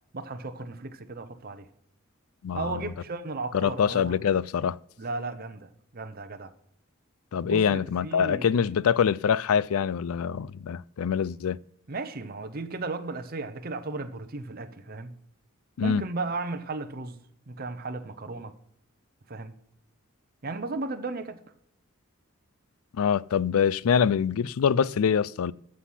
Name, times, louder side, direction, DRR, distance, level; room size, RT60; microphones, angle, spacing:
voice 1, 0.1-1.7 2.5-4.2 5.0-6.5 7.4-8.6 11.9-15.1 15.8-17.2 17.5-18.5 19.3-19.5 20.4-21.4, right 3 dB, 45° right, 0.8 m, -35 dB
voice 2, 2.4-2.9 3.5-4.8 7.3-11.6 15.8-16.0 23.0-25.5, left 7 dB, 85° left, 0.4 m, -25 dB
14.0 x 6.4 x 5.7 m
head